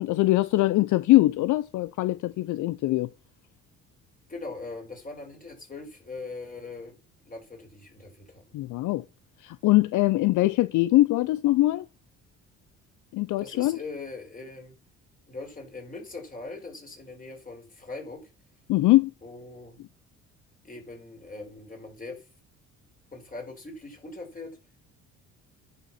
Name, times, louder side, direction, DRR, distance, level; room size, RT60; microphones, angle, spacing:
voice 1, 0.0-3.1 8.5-9.0 9.4-11.9 13.1-13.8 18.7-19.1, left 17 dB, 65° left, 0.5 m, -22 dB
voice 2, 4.3-6.9 7.2-8.4 13.4-14.7 15.3-18.2 19.2-19.8 20.6-22.3 23.1-24.6, left 3 dB, 25° left, 4.5 m, -41 dB
10.5 x 5.5 x 5.7 m
cardioid pair, 85°, 32 cm